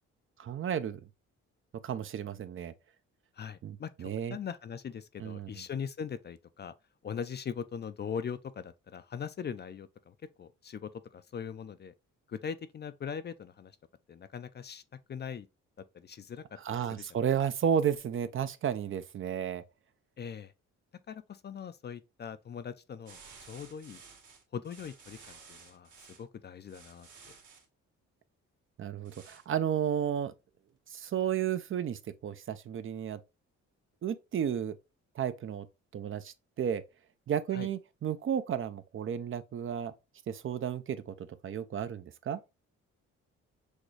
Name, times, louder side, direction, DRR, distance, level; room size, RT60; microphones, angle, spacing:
voice 1, 0.4-1.0 1.8-2.7 3.6-4.4 5.2-5.5 16.6-19.6 28.8-30.3 30.9-33.2 34.0-34.8 35.2-35.7 35.9-36.8 37.3-39.9 40.3-41.1 41.4-42.4, right 8 dB, 45° right, 0.5 m, -32 dB
voice 2, 3.3-6.7 7.0-11.9 12.3-13.8 14.1-14.8 15.1-15.5 15.9-17.2 20.2-20.5 21.1-24.0 24.5-25.9 26.2-27.1 37.5-37.7, left 7 dB, 35° left, 0.4 m, -41 dB
sound 1, 23.1-26.2 26.7-27.7 29.0-29.5, right 5 dB, 80° right, 2.0 m, -54 dB
6.3 x 2.3 x 3.2 m
cardioid pair, 90°, 30 cm